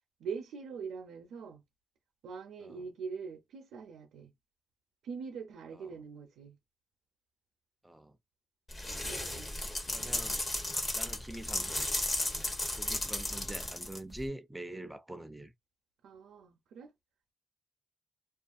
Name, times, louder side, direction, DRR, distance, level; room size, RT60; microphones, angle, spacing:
voice 1, 0.2-1.6 2.2-4.3 5.0-6.6 9.0-9.5 16.0-16.9, right 5 dB, 90° right, 0.5 m, -43 dB
voice 2, 7.8-8.2 9.9-10.4 10.9-11.9 12.2-15.5, right 1 dB, 10° right, 0.4 m, -45 dB
sound 1, 8.7-14.3, left 1 dB, 30° left, 0.8 m, -35 dB
2.5 x 2.3 x 2.4 m
cardioid pair, 100°, 0 cm